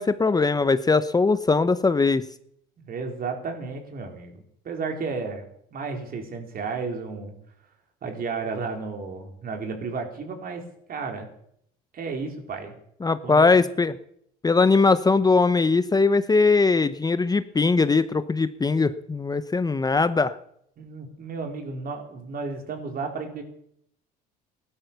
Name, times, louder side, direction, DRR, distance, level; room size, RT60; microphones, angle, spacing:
voice 1, 0.0-2.3 13.0-14.0 14.4-20.4, left 4 dB, 20° left, 13 dB, 0.8 m, -20 dB
voice 2, 2.9-5.4 5.7-7.3 8.0-10.6 10.9-11.3 11.9-12.8 13.2-13.6 20.8-23.4, right 4 dB, 50° right, 3 dB, 4.2 m, -33 dB
16.5 x 12.0 x 7.0 m, 0.71 s
supercardioid pair, 80°, 20 cm